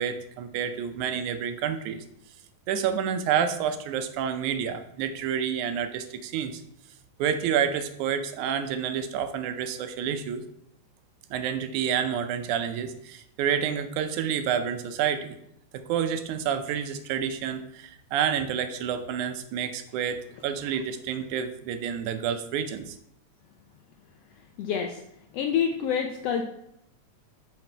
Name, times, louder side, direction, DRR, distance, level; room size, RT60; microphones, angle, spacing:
voice 1, 0.0-2.0 2.7-6.6 7.2-10.4 11.3-15.4 15.7-23.0, right 8 dB, 90° right, 9 dB, 2.1 m, -29 dB
voice 2, 24.3-25.0 25.3-26.4, left 8 dB, 80° left, 4 dB, 1.4 m, -27 dB
5.9 x 5.7 x 4.4 m, 0.77 s
omnidirectional pair, 3.4 m